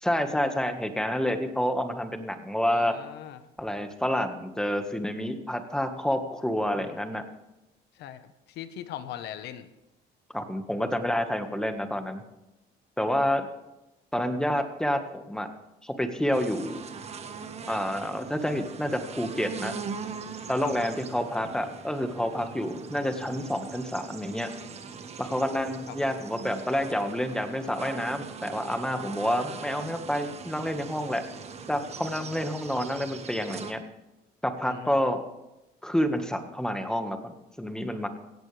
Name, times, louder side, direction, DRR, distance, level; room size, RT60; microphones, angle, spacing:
voice 1, 0.0-2.9 3.6-7.2 10.3-12.2 13.0-13.5 14.1-15.5 15.8-16.8 17.7-19.8 20.5-24.5 25.2-31.2 31.7-33.8 34.4-35.2 35.8-38.1, equal, 5° left, 7 dB, 1.6 m, -28 dB
voice 2, 2.6-3.5 6.7-7.2 7.9-9.7 20.6-20.8 21.4-21.5 25.9-26.1 34.6-35.0, left 11 dB, 80° left, 11 dB, 1.3 m, -41 dB
sound 1, 16.3-33.7, right 5 dB, 40° right, 1.5 m, -41 dB
17.5 x 15.0 x 3.4 m, 0.97 s
cardioid pair, 110°, 17 cm